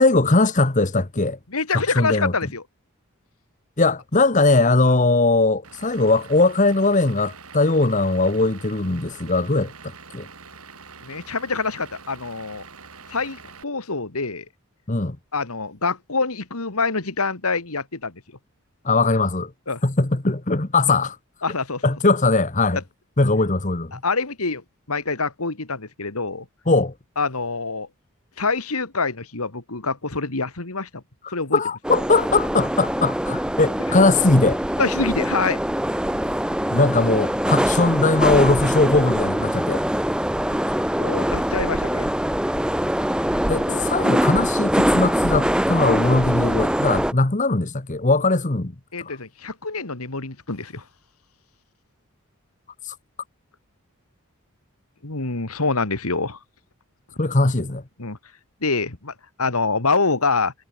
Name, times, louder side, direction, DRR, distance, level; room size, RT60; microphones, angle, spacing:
voice 1, 0.0-1.4 1.7-2.3 3.8-9.7 10.1-10.3 14.9-15.2 18.8-19.5 19.8-21.2 21.8-22.8 23.2-23.9 26.7-26.9 31.2-34.6 36.7-39.8 43.5-48.7 49.0-49.2 52.8-53.0 57.2-57.8, left 3 dB, 35° left, 1.2 m, -20 dB
voice 2, 1.5-2.6 11.0-12.7 13.1-14.4 15.3-18.1 19.7-19.8 21.4-21.9 22.7-22.8 23.9-24.6 24.9-26.5 27.2-27.9 28.4-31.0 31.3-31.6 33.9-34.1 34.8-35.6 41.0-42.1 43.7-43.9 48.9-50.8 55.0-56.4 58.0-58.2 58.6-59.1 59.4-60.5, left 4 dB, 85° left, 2.4 m, -25 dB
Vehicle / Engine, 5.6-13.6, right 5 dB, 85° right, 5.4 m, -44 dB
sound 1, 31.8-47.1, equal, 5° right, 1.1 m, -23 dB
head